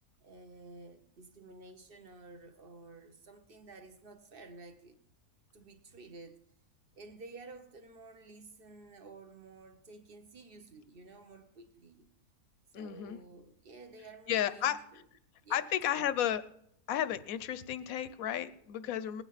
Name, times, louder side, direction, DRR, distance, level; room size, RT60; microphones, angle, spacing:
voice 1, 0.2-5.0 5.5-6.4 6.9-12.1 12.7-15.0 15.4-16.1, right 3 dB, 40° right, 1.0 m, -52 dB
voice 2, 12.7-13.2 14.3-14.8 15.5-16.4 16.9-19.2, left 11 dB, 65° left, 1.0 m, -33 dB
19.5 x 9.3 x 4.1 m
omnidirectional pair, 1.7 m